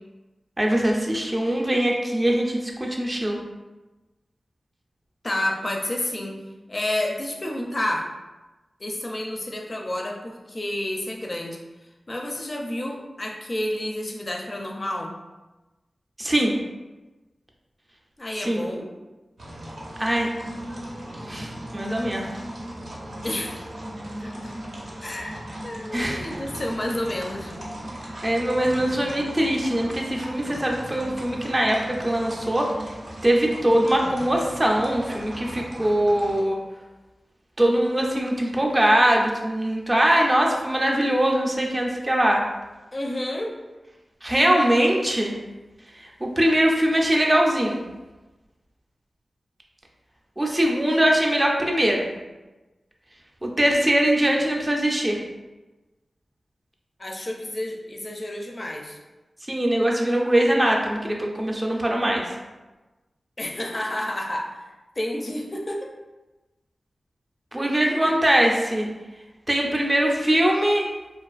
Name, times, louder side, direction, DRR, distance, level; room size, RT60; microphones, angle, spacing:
voice 1, 0.6-3.4 16.2-16.5 18.4-18.7 20.0-20.3 21.2-22.2 25.9-26.2 28.2-32.7 33.2-36.6 37.6-42.4 44.2-45.3 46.2-47.8 50.4-52.0 53.4-55.2 59.5-62.4 67.5-68.9 69.5-70.9, right 1 dB, 25° right, 0 dB, 0.4 m, -22 dB
voice 2, 5.2-6.4 6.7-8.1 8.8-11.6 12.1-15.1 18.2-18.9 23.2-23.6 24.2-24.5 25.0-25.4 25.6-27.5 42.9-43.6 57.0-59.0 63.4-65.9 67.6-68.0, left 1 dB, 40° left, 1 dB, 0.4 m, -30 dB
sound 1, 19.4-36.4, right 1 dB, 70° right, 0.6 m, -37 dB
2.4 x 2.3 x 2.4 m, 1.1 s
cardioid pair, 55°, 0 cm